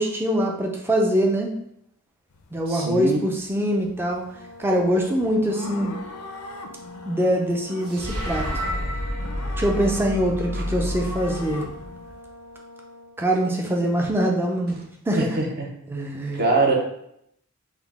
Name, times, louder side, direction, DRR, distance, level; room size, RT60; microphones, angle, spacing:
voice 1, 0.0-1.5 2.5-4.2 4.6-5.9 7.1-8.6 9.6-11.7 13.2-14.8 15.1-15.3 15.9-16.4, equal, 10° right, 1 dB, 0.4 m, -23 dB
sound 1, 2.3-12.2, left 3 dB, 85° left, 0.4 m, -41 dB
voice 2, 2.7-3.2 10.5-10.6 15.1-15.7 16.3-16.8, right 2 dB, 45° right, 0 dB, 0.7 m, -23 dB
Brass instrument, 4.3-13.2, left 1 dB, 60° right, 1.3 m, -45 dB
sound 2, 7.8-12.2, equal, 75° right, 0.8 m, -30 dB
3.6 x 2.1 x 3.4 m, 0.75 s
head